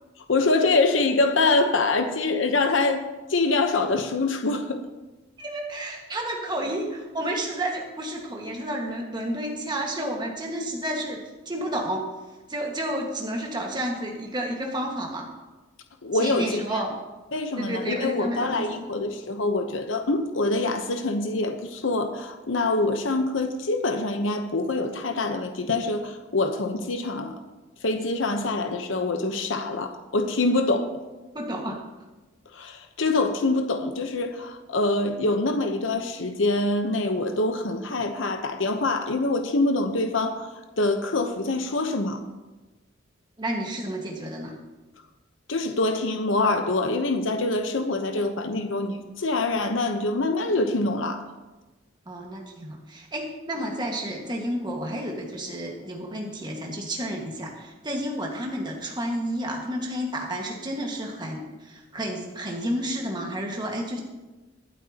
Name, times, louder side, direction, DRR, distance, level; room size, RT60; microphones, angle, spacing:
voice 1, 0.2-3.0 3.3-4.8 16.0-16.9 17.3-27.4 27.8-30.9 32.5-42.2 45.5-51.2, left 2 dB, 70° left, 6 dB, 0.9 m, -25 dB
voice 2, 5.4-12.1 12.5-15.3 16.1-16.9 17.6-18.9 31.3-31.8 43.4-44.6 52.0-64.0, right 1 dB, 25° right, 0 dB, 1.7 m, -31 dB
24.0 x 8.1 x 2.9 m, 1.2 s
head